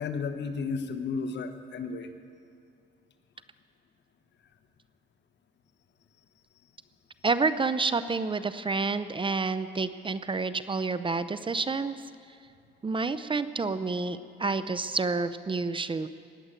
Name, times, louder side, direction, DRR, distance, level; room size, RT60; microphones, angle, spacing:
voice 1, 0.0-2.1, left 5 dB, 60° left, 8 dB, 1.2 m, -33 dB
voice 2, 7.2-12.0 12.8-16.1, right 4 dB, 25° right, 13 dB, 0.6 m, -29 dB
19.5 x 8.0 x 9.0 m, 2.4 s
cardioid pair, 90°, 20 cm